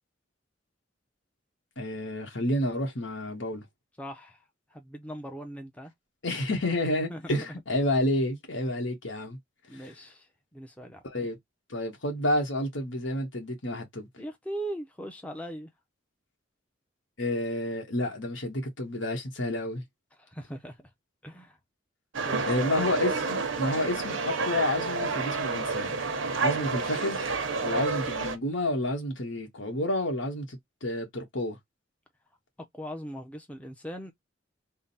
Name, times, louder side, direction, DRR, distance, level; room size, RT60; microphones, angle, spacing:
voice 1, 1.8-3.6 6.2-9.4 9.7-9.8 11.0-11.4 11.7-14.1 17.2-19.8 22.5-26.0 26.4-27.2 27.6-31.6, left 1 dB, 70° left, 1.4 m, -30 dB
voice 2, 4.0-4.4 4.7-5.9 7.1-7.6 9.7-11.0 14.2-15.7 20.2-20.9 21.2-21.6 22.2-22.8 32.7-34.1, right 1 dB, 5° left, 0.6 m, -40 dB
sound 1, 22.1-28.4, right 4 dB, 80° right, 0.9 m, -29 dB
3.7 x 2.2 x 4.1 m
head